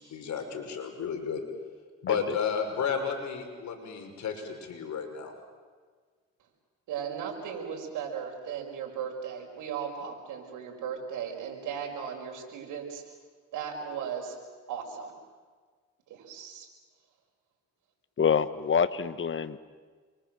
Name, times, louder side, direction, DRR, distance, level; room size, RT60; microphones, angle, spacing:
voice 1, 0.0-1.4 2.0-5.3, left 6 dB, 65° left, 4 dB, 5.7 m, -32 dB
voice 2, 2.1-2.4 18.2-19.6, left 7 dB, 40° left, 13 dB, 1.5 m, -26 dB
voice 3, 6.9-13.0 13.5-14.4 14.7-15.1 16.1-16.7, right 7 dB, 90° right, 1 dB, 6.0 m, -36 dB
29.0 x 24.5 x 7.8 m, 1.5 s
cardioid pair, 90°, 30 cm